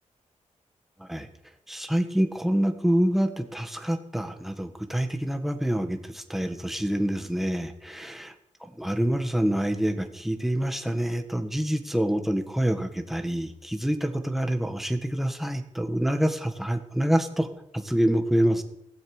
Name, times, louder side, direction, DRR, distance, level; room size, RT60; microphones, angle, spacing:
voice 1, 1.7-8.3 8.8-17.5 17.7-18.6, right 1 dB, ahead, 6 dB, 1.4 m, -26 dB
16.5 x 15.0 x 5.0 m, 0.82 s
wide cardioid pair, 150°, 13 cm